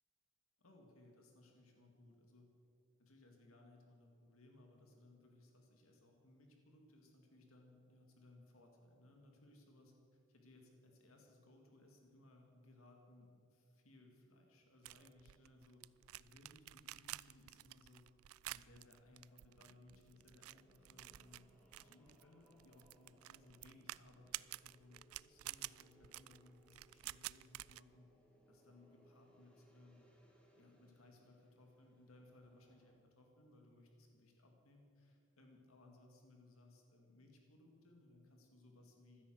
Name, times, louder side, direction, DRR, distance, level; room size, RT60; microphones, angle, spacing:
voice 1, 0.6-2.5 3.0-15.8 16.2-18.0 18.5-28.1 28.5-30.1 30.6-39.2, left 2 dB, 85° left, 2 dB, 2.1 m, -64 dB
sound 1, 14.8-27.8, right 16 dB, 85° right, 0.3 m, -51 dB
sound 2, 19.4-33.0, equal, 5° left, 1.8 m, -71 dB
15.5 x 12.5 x 6.4 m, 2.6 s
head